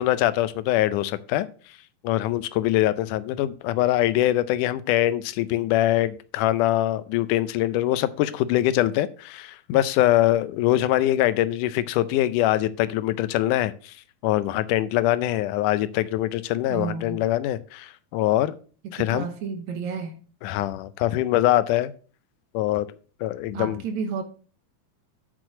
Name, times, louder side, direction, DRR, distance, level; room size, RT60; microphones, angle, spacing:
voice 1, 0.0-1.5 2.0-14.0 14.2-18.6 18.9-19.3 20.4-21.9 22.5-22.9 23.2-23.8, left 14 dB, 85° left, 2.0 m, -23 dB
voice 2, 16.7-17.2 18.8-20.2 23.5-24.2, right 5 dB, 70° right, 2.1 m, -31 dB
6.3 x 6.2 x 5.7 m
omnidirectional pair, 3.7 m